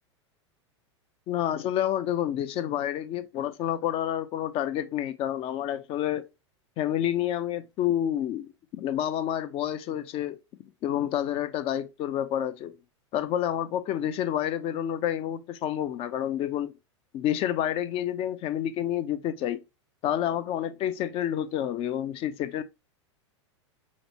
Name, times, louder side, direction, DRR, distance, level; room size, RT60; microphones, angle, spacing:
voice 1, 1.3-6.3 6.8-10.4 10.8-12.7 13.1-16.7 17.1-19.6 20.0-22.6, left 11 dB, 35° left, 0.5 m, -29 dB
5.0 x 2.0 x 2.9 m
hypercardioid pair, 100°, 16 cm